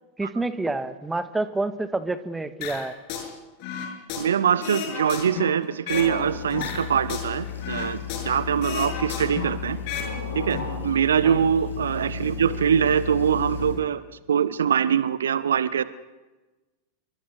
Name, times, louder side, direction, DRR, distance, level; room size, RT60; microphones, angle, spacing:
voice 1, 0.2-2.9 11.2-11.4, right 2 dB, 10° right, 12 dB, 1.6 m, -28 dB
sound 1, 2.6-3.3 3.6-6.1 6.5-8.4 8.6-10.1 10.4-10.6, left 7 dB, 45° left, 6.9 m, -33 dB
voice 2, 4.2-8.0 8.2-9.8 10.3-14.0 14.3-15.8, right 8 dB, 65° right, 16 dB, 0.9 m, -23 dB
sound 2, 5.9-13.8, left 5 dB, 75° left, 7.9 m, -33 dB
27.5 x 24.0 x 6.5 m, 1.2 s
figure-of-eight pair, 90°, 0 cm